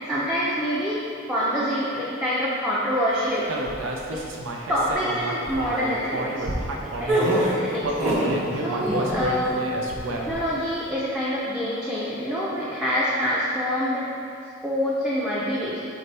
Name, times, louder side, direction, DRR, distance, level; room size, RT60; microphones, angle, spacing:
voice 1, 0.1-1.0 1.3-3.5 4.1-4.3 4.7-6.5 6.8-8.0 8.6-9.6 10.1-14.1 14.6-15.9, equal, 5° right, -8 dB, 0.6 m, -26 dB
Human voice, 3.5-7.4 7.8-10.5, right 1 dB, 80° right, 0.6 m, -30 dB
sound 1, 7.1-8.4 8.7-9.2, right 1 dB, 35° right, 1.3 m, -23 dB
7.1 x 4.1 x 3.3 m, 2.6 s
head